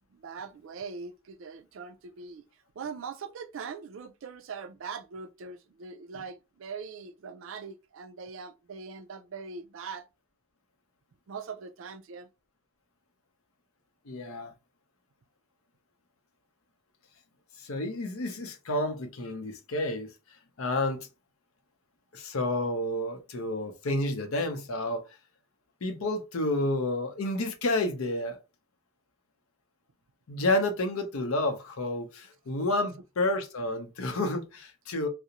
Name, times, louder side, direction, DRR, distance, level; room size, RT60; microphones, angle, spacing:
voice 1, 0.1-2.4 2.8-10.1 11.3-12.3, right 5 dB, 65° right, 0.4 m, -41 dB
voice 2, 14.1-14.5 17.6-20.1 20.6-21.1 22.1-25.0 25.8-28.4 30.3-35.1, left 1 dB, 80° left, 0.6 m, -30 dB
2.5 x 2.0 x 2.8 m
head